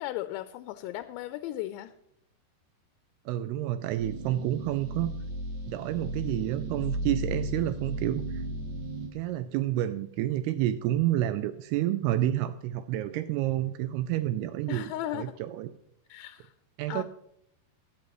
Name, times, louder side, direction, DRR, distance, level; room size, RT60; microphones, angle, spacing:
voice 1, 0.0-1.9 14.7-15.4 16.1-16.5 16.9-17.0, left 14 dB, 90° left, 11 dB, 2.9 m, -36 dB
voice 2, 3.3-5.1 5.7-8.4 9.1-15.7 16.8-17.0, right 13 dB, 90° right, 11 dB, 2.2 m, -29 dB
sound 1, 4.0-9.1, right 1 dB, 65° right, 3.6 m, -35 dB
15.5 x 10.5 x 3.0 m, 0.78 s
omnidirectional pair, 5.1 m